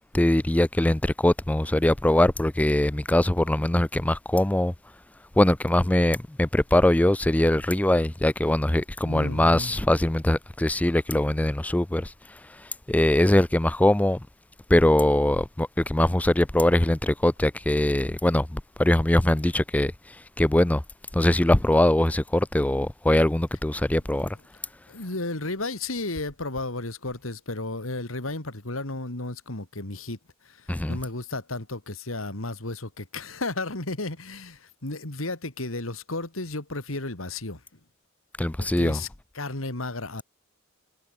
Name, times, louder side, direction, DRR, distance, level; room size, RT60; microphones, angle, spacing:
voice 1, 0.1-4.7 5.4-14.2 14.7-20.8 21.1-24.4 30.7-31.0 38.4-39.0, left 1 dB, 5° left, 0.4 m, -22 dB
voice 2, 9.0-9.7 24.9-30.2 30.4-37.6 38.6-39.1 39.3-40.2, left 2 dB, 90° left, 3.0 m, -33 dB
head